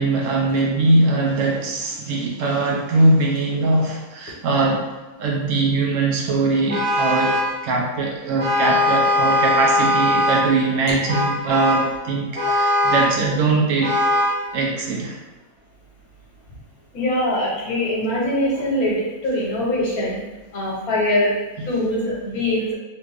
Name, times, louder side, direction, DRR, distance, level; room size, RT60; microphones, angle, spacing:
voice 1, 0.0-4.8 5.2-14.0 14.5-15.2, right 3 dB, 70° right, -1 dB, 0.9 m, -21 dB
Vehicle horn car horn honking, 6.7-7.6 8.4-10.6 11.1-11.9 12.4-13.2 13.8-14.4, left 1 dB, 90° right, 1.3 m, -20 dB
voice 2, 16.9-20.2 20.5-21.3 21.7-22.7, left 1 dB, 80° left, -4 dB, 1.4 m, -22 dB
3.2 x 2.4 x 3.2 m, 1.1 s
omnidirectional pair, 1.5 m